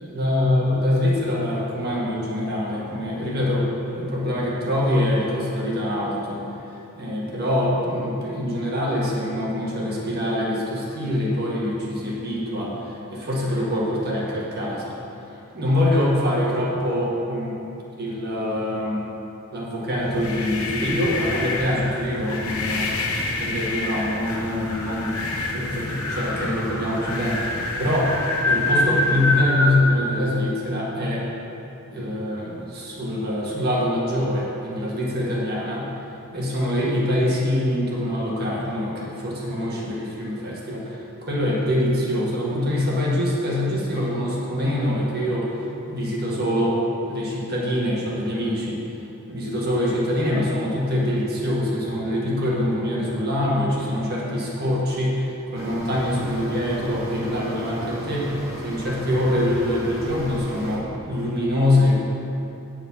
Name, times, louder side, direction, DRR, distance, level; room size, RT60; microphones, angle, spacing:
voice 1, 0.0-6.4 7.0-15.0 15.5-17.5 18.0-19.1 19.5-23.1 23.4-25.1 25.5-28.1 28.5-31.3 31.9-35.9 36.3-45.5 45.9-48.8 49.3-61.9, left 1 dB, 45° right, -4 dB, 1.9 m, -24 dB
sound 1, 19.9-29.7, left 2 dB, 70° left, 1.2 m, -26 dB
sound 2, 55.5-60.8, equal, 15° right, 1.6 m, -35 dB
9.2 x 7.2 x 5.7 m, 2.8 s
head